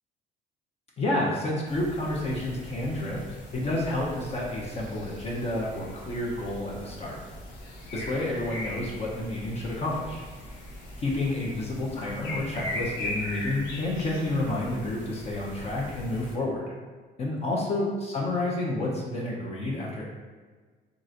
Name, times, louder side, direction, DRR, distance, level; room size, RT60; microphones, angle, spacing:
voice 1, 1.0-7.2 7.9-10.3 11.0-16.7 17.2-20.0, left 2 dB, 40° left, -3 dB, 0.7 m, -30 dB
sound 1, 1.6-16.3, left 1 dB, 85° left, 0.8 m, -40 dB
2.9 x 2.5 x 3.8 m, 1.4 s
cardioid pair, 110°, 17 cm